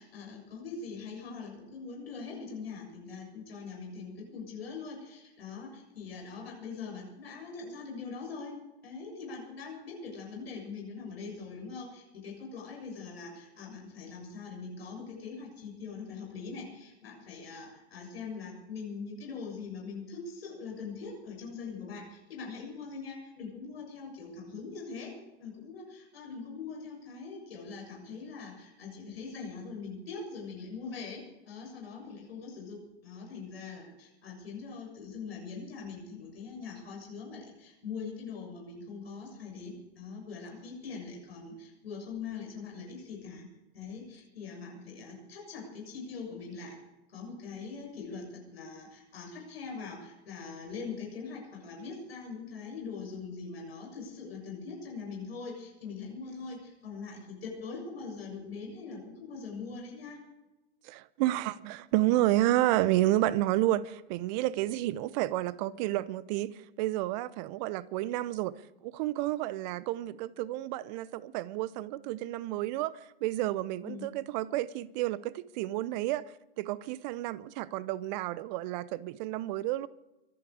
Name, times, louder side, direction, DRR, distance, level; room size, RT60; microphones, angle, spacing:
voice 1, 0.0-43.5 43.7-46.8 47.1-60.2 63.6-63.7 73.8-74.1, left 5 dB, 70° left, 7.1 m, -42 dB
voice 2, 60.8-68.6 68.8-79.9, right 15 dB, 45° right, 0.8 m, -30 dB
25.0 x 12.0 x 4.9 m
figure-of-eight pair, 100°, 32 cm